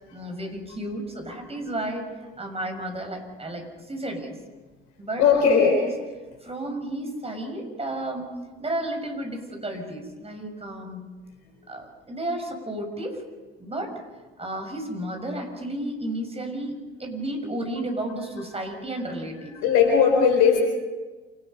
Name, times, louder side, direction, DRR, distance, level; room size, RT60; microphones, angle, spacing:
voice 1, 0.1-2.1 2.4-4.4 5.0-5.9 6.4-8.3 8.6-11.1 11.7-13.2 13.6-13.9 14.4-19.6, right 1 dB, 20° right, 4 dB, 6.7 m, -32 dB
voice 2, 5.2-5.8 19.5-20.6, left 6 dB, 60° left, 2 dB, 4.5 m, -18 dB
28.0 x 20.0 x 5.5 m, 1.3 s
figure-of-eight pair, 55°, 30 cm